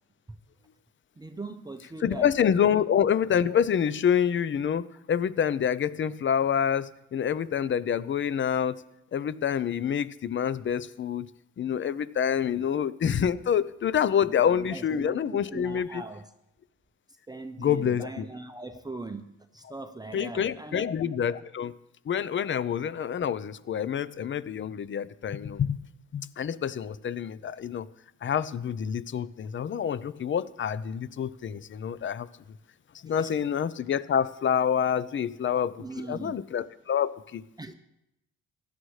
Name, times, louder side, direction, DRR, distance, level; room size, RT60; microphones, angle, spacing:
voice 1, 1.2-2.3 2.7-2.9 12.5-12.6 14.2-16.3 17.1-20.9 33.1-33.3 35.8-36.4 37.6-37.7, right 3 dB, 15° right, 7 dB, 0.7 m, -40 dB
voice 2, 2.0-8.8 9.1-11.3 11.6-16.0 17.6-18.2 20.1-21.7 22.1-25.8 26.1-27.9 28.2-32.3 33.0-35.7 36.1-37.4, left 8 dB, 40° left, 17 dB, 0.6 m, -27 dB
16.0 x 11.0 x 3.3 m, 0.85 s
cardioid pair, 90°, 30 cm